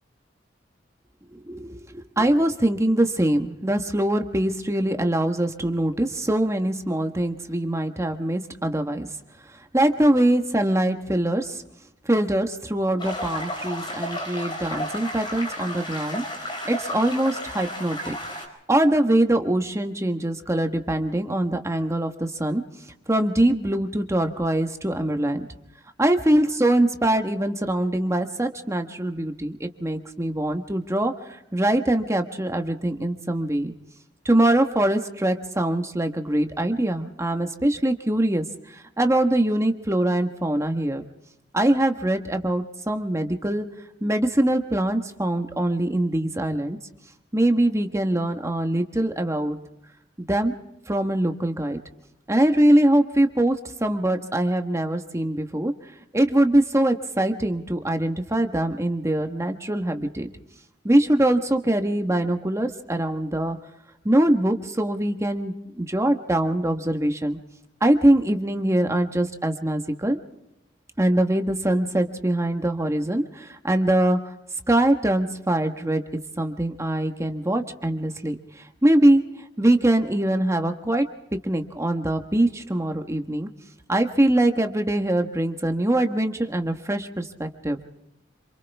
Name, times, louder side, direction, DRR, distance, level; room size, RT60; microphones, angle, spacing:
voice 1, 1.3-9.1 9.5-11.6 12.0-18.2 18.7-22.6 23.1-25.5 26.0-33.7 34.2-41.0 41.5-43.6 44.0-46.8 47.3-49.6 50.2-50.5 50.9-51.8 52.3-55.7 56.1-60.3 60.8-63.6 64.0-67.4 67.8-70.2 71.0-74.2 74.7-76.0 76.4-79.2 79.6-81.0 81.4-83.5 83.9-87.8, right 1 dB, 15° right, 6 dB, 1.4 m, -23 dB
sound 1, 13.0-18.5, left 1 dB, 25° left, 4.6 m, -33 dB
27.5 x 26.5 x 3.5 m, 0.84 s
head